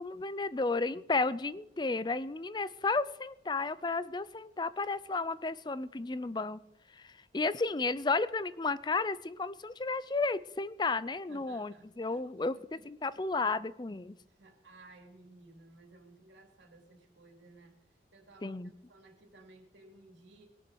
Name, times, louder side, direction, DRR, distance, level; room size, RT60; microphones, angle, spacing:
voice 1, 0.0-6.6 6.9-12.6 12.8-14.2 18.4-18.7, left 3 dB, 25° left, 16 dB, 0.4 m, -33 dB
voice 2, 11.3-12.8 14.3-17.8 18.1-18.6 18.9-20.5, right 2 dB, 80° right, 2 dB, 2.9 m, -57 dB
21.0 x 7.1 x 4.7 m, 0.84 s
head